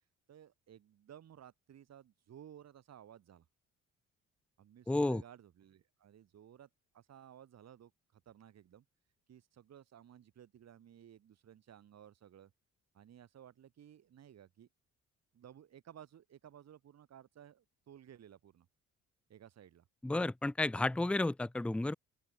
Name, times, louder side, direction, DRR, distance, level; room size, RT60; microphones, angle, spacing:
voice 1, 0.3-3.5 4.6-8.8 9.3-12.5 12.9-14.7 15.3-18.7 19.3-19.9, right 10 dB, 60° right, 2.4 m, -57 dB
voice 2, 4.9-5.2 20.0-21.9, left 2 dB, 5° left, 0.5 m, -32 dB
open air
cardioid pair, 90°, 30 cm